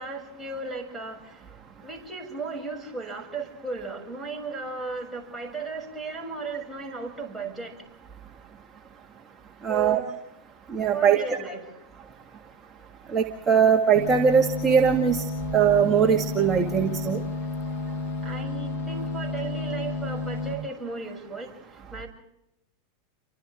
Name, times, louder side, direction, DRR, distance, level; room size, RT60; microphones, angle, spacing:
voice 1, 0.0-1.4 1.8-7.8 9.7-10.1 10.9-11.7 18.2-21.5 21.9-22.1, right 3 dB, 5° right, 0 dB, 7.1 m, -35 dB
voice 2, 9.6-10.0 10.7-11.4 13.1-15.2 15.5-17.2, right 7 dB, 25° right, 2 dB, 2.0 m, -21 dB
sound 1, 13.9-20.5, left 3 dB, 75° left, 7.1 m, -31 dB
29.5 x 25.0 x 3.6 m, 0.79 s
hypercardioid pair, 105°, 0 cm